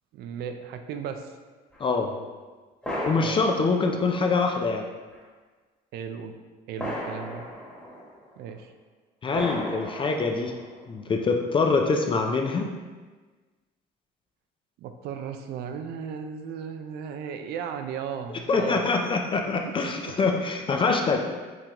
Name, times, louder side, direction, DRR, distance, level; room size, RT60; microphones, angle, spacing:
voice 1, 0.1-1.3 3.2-3.4 5.9-6.3 6.7-7.5 8.4-8.7 14.8-18.8 19.7-20.1, right 7 dB, 70° right, 7 dB, 0.4 m, -36 dB
sound 1, 1.7-1.8 2.8-4.6 5.1-5.2 6.8-8.4 9.3-10.9, equal, 5° left, 1.3 m, -35 dB
voice 2, 1.8-2.1 3.0-4.9 9.2-10.5 10.9-12.7 18.5-21.2, left 4 dB, 30° left, 3 dB, 0.4 m, -24 dB
4.7 x 3.7 x 2.9 m, 1.3 s
cardioid pair, 110°, 17 cm